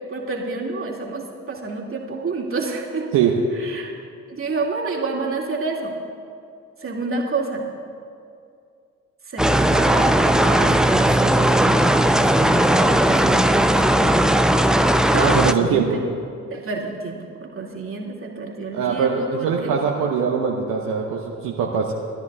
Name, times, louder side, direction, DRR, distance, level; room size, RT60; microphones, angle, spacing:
voice 1, 0.0-3.1 3.5-3.9 4.3-6.0 6.8-7.7 9.3-13.9 15.3-16.0 16.5-19.7, right 3 dB, 35° right, -2 dB, 2.3 m, -29 dB
sound 1, 9.4-15.5, right 1 dB, ahead, 0.6 m, -17 dB
voice 2, 15.1-15.9 18.7-21.9, right 7 dB, 60° right, 0 dB, 1.0 m, -22 dB
20.0 x 13.0 x 2.4 m, 2.4 s
figure-of-eight pair, 45°, 38 cm